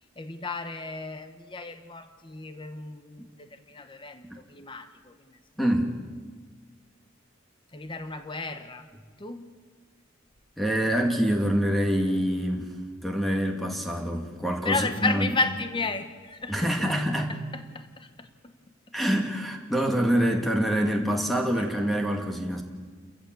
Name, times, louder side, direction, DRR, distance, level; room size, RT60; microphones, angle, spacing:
voice 1, 0.2-5.4 7.7-8.9 9.2-9.5 14.6-16.7 17.3-18.5 18.9-19.0 21.6-21.7, left 3 dB, 25° left, 9 dB, 1.1 m, -33 dB
voice 2, 5.6-6.0 10.6-12.7 13.0-15.3 16.5-17.3 18.9-22.6, equal, ahead, 2 dB, 2.4 m, -26 dB
29.5 x 14.5 x 7.8 m, 1.5 s
head